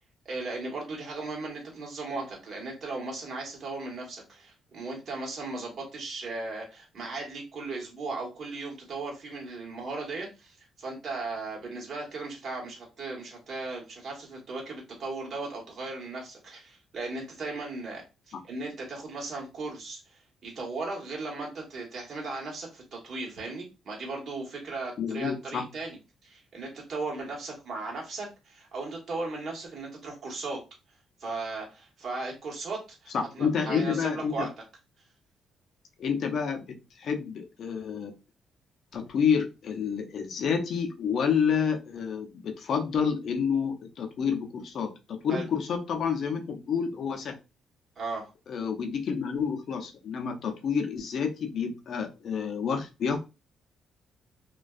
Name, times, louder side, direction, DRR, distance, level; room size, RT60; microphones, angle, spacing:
voice 1, 0.2-18.0 18.3-26.0 26.2-30.6 31.2-34.5 45.3-45.5 48.0-48.3, right 3 dB, 50° right, -1 dB, 1.2 m, -37 dB
voice 2, 25.0-25.7 33.1-34.5 36.0-38.1 38.9-47.3 48.5-53.2, left 6 dB, 60° left, 4 dB, 0.6 m, -29 dB
2.5 x 2.3 x 2.3 m, 0.28 s
cardioid pair, 90°, 0 cm